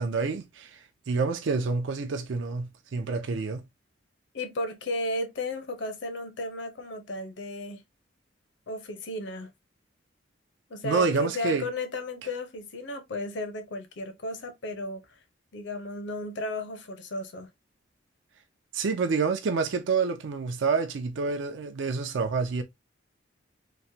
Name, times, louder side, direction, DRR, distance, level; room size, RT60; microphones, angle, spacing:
voice 1, 0.0-3.6 10.8-11.7 18.7-22.6, right 4 dB, 75° right, 0.4 m, -28 dB
voice 2, 4.3-7.8 8.7-9.5 10.7-15.0 15.5-17.5, left 1 dB, 65° left, 0.7 m, -34 dB
3.0 x 2.1 x 2.6 m
head